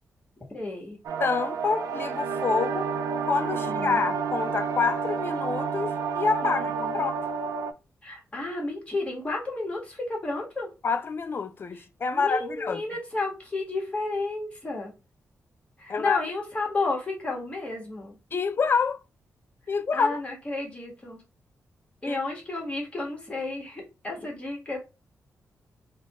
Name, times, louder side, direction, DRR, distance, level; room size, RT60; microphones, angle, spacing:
voice 1, 0.5-1.0 3.5-4.1 6.4-7.1 8.0-10.7 11.7-11.8 12.1-14.9 15.8-18.2 19.9-21.2 22.0-24.8, left 2 dB, 20° left, 1.4 m, -32 dB
sound 1, 1.0-7.7, right 5 dB, 85° right, 0.4 m, -30 dB
voice 2, 1.2-2.9 3.2-7.2 10.8-12.8 15.9-16.2 18.3-19.0 19.7-20.2 22.1-22.2, left 5 dB, 40° left, 0.4 m, -27 dB
4.2 x 2.2 x 2.9 m
wide cardioid pair, 125°, 6 cm